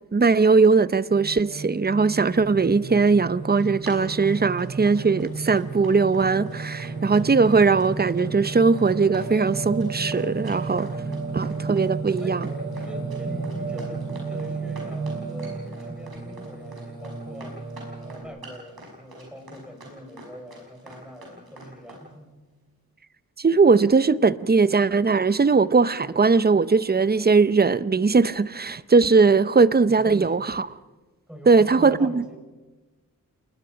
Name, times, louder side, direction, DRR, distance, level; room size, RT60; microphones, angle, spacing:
voice 1, 0.1-10.9 11.3-12.4 23.4-30.7 31.5-32.2, right 4 dB, 25° right, 0.6 m, -19 dB
Singing, 1.1-18.2, right 4 dB, 55° right, 4.9 m, -33 dB
Run, 3.3-22.0, right 1 dB, 90° right, 5.8 m, -46 dB
voice 2, 12.8-17.6 18.0-22.3 29.9-30.5 31.3-32.4, equal, 5° right, 4.8 m, -41 dB
29.5 x 20.0 x 5.1 m
wide cardioid pair, 75°, 35 cm